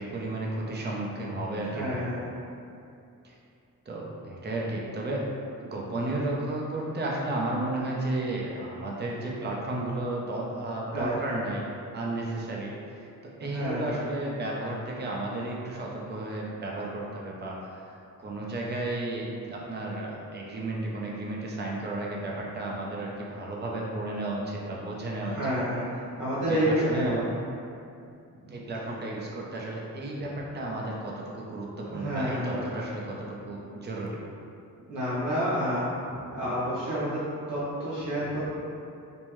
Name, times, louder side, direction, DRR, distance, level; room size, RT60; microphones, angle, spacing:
voice 1, 0.0-2.0 3.2-3.3 3.9-5.3 5.6-11.6 11.9-25.4 26.5-27.3 28.5-34.2, right 2 dB, 30° right, -3 dB, 0.6 m, -33 dB
voice 2, 1.7-2.2 10.9-11.4 13.4-14.0 25.2-27.1 31.8-32.7 34.9-35.9 36.3-37.2 37.5-38.4, equal, 70° right, -10 dB, 0.9 m, -29 dB
5.3 x 2.1 x 3.0 m, 2.5 s
cardioid pair, 120°, 33 cm